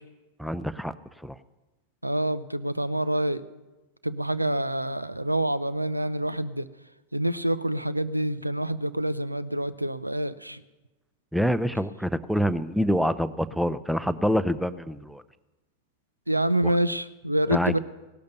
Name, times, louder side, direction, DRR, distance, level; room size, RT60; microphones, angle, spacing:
voice 1, 0.4-0.9 1.2-1.3 11.3-15.2 16.6-16.7 17.5-17.8, equal, ahead, 15 dB, 0.6 m, -26 dB
voice 2, 2.0-3.4 4.0-6.7 7.1-10.6 16.3-17.8, right 1 dB, 85° right, 16 dB, 0.6 m, -27 dB
17.0 x 12.0 x 6.8 m, 1.1 s
figure-of-eight pair, 90°, 0 cm